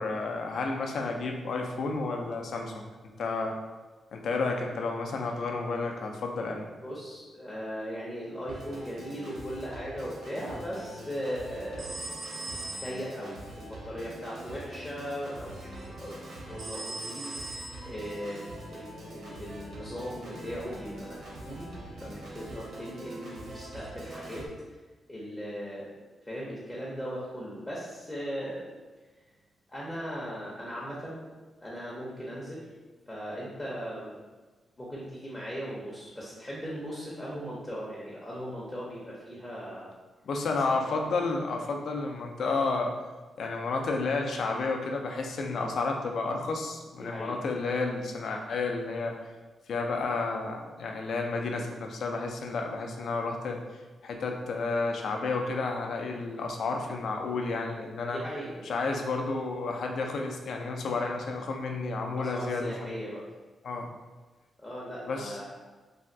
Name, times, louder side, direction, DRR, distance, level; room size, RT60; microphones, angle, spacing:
voice 1, 0.0-2.8 3.2-3.6 4.1-6.7 40.3-42.9 43.4-49.1 49.7-53.6 54.0-58.2 58.7-62.7 63.6-63.9 65.1-65.4, left 3 dB, 65° left, 2 dB, 0.4 m, -31 dB
voice 2, 6.8-12.0 12.3-12.4 12.8-15.7 16.0-16.2 16.5-21.7 22.0-24.5 25.1-25.9 26.2-28.7 29.7-31.2 31.6-32.7 33.1-34.2 34.8-39.9 45.5-45.7 47.0-47.3 57.3-57.4 58.1-58.6 62.2-63.3 64.6-65.6, equal, 15° left, -6 dB, 0.5 m, -38 dB
Organ, 8.5-24.5, right 1 dB, 70° right, 0.7 m, -44 dB
sound 1, 11.8-13.2 16.6-18.2, right 2 dB, 45° right, 0.3 m, -39 dB
3.2 x 2.2 x 2.6 m, 1.3 s
wide cardioid pair, 145°, 0 cm